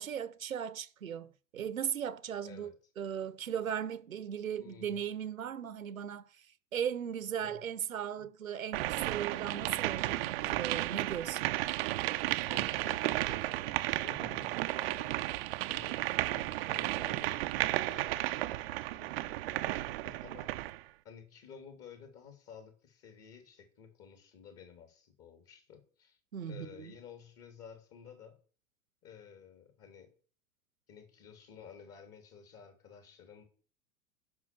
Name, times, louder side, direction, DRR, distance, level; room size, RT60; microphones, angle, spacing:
voice 1, 0.0-6.5 6.7-11.6 26.3-26.9, right 8 dB, 70° right, 1.0 m, -37 dB
voice 2, 4.5-5.0 7.4-7.6 10.4-10.7 12.5-14.5 14.8-20.5 21.0-26.2 26.5-28.4 29.0-30.1 30.9-33.4, left 7 dB, 35° left, 3.6 m, -53 dB
sound 1, 8.7-20.8, right 17 dB, 45° right, 0.7 m, -33 dB
10.5 x 6.1 x 7.7 m
figure-of-eight pair, 90°, 42 cm